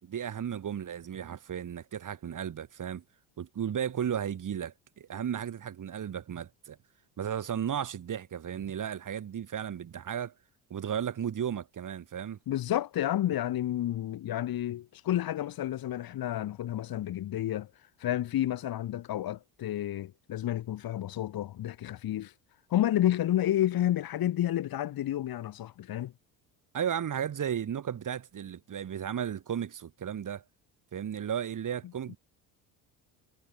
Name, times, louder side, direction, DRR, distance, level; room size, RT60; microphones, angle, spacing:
voice 1, 0.0-3.0 3.4-6.8 7.2-10.3 10.7-12.4 26.7-30.4 30.9-32.2, right 9 dB, 45° right, 5.7 m, -34 dB
voice 2, 12.5-17.7 18.0-22.3 22.7-26.1, left 12 dB, 55° left, 2.6 m, -30 dB
supercardioid pair, 75°, 42 cm